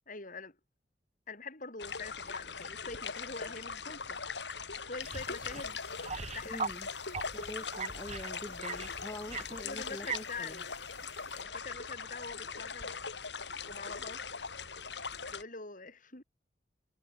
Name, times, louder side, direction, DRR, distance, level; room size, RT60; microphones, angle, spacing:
voice 1, 0.1-0.6 1.3-4.2 4.9-5.8 6.2-6.6 9.4-10.8 11.3-12.9 13.4-14.2 15.3-16.2, left 3 dB, 50° left, 5.8 m, -45 dB
sound 1, 1.8-15.4, left 5 dB, 85° left, 4.0 m, -41 dB
sound 2, 5.0-6.8 7.1-10.4 10.9-11.2, right 5 dB, 40° right, 2.1 m, -41 dB
voice 2, 6.4-6.9 7.3-10.6, left 1 dB, 20° left, 1.1 m, -45 dB
head